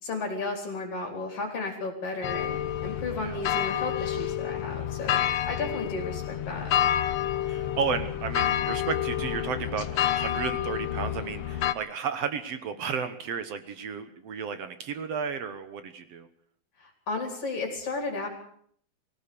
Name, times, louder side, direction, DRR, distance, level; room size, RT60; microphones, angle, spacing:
voice 1, 0.0-5.2 5.4-6.7 16.8-18.3, left 3 dB, 40° left, 2 dB, 4.5 m, -33 dB
sound 1, 2.2-11.7, left 11 dB, 75° left, 1.5 m, -29 dB
voice 2, 7.5-16.3, right 6 dB, 60° right, 10 dB, 1.8 m, -33 dB
24.0 x 16.5 x 6.9 m, 0.64 s
omnidirectional pair, 4.3 m